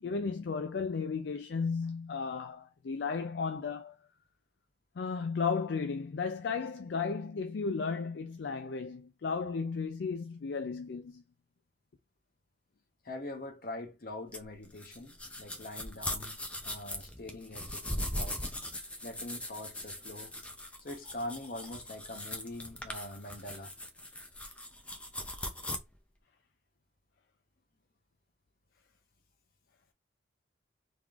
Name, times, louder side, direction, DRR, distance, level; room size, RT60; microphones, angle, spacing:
voice 1, 0.0-4.0 5.0-11.2, left 5 dB, 70° left, 0.4 m, -34 dB
voice 2, 13.0-16.4 16.6-18.4 19.0-20.3 20.8-23.7, left 1 dB, 50° left, 0.9 m, -43 dB
sound 1, 14.3-25.8, left 1 dB, 5° left, 0.5 m, -40 dB
3.5 x 3.0 x 2.4 m
head